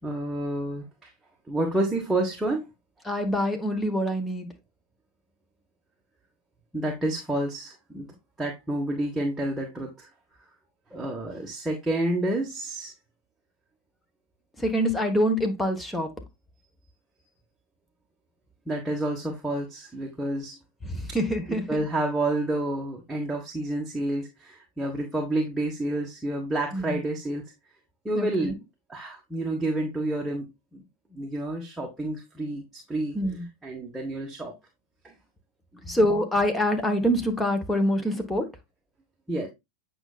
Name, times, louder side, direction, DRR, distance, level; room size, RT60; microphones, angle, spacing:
voice 1, 0.0-1.1 1.5-2.7 6.7-8.1 8.4-10.1 10.9-12.9 18.7-20.6 21.5-27.4 28.0-28.6 28.9-30.8 31.1-33.2 33.6-34.5 35.0-35.1 35.7-36.0 39.3-39.5, right 1 dB, 5° right, 1.5 m, -29 dB
voice 2, 3.1-4.5 14.6-16.1 20.9-21.8 26.7-26.9 28.2-28.5 33.1-33.4 35.9-38.4, equal, 10° left, 1.4 m, -25 dB
8.8 x 5.3 x 2.4 m
figure-of-eight pair, 90°, 0 cm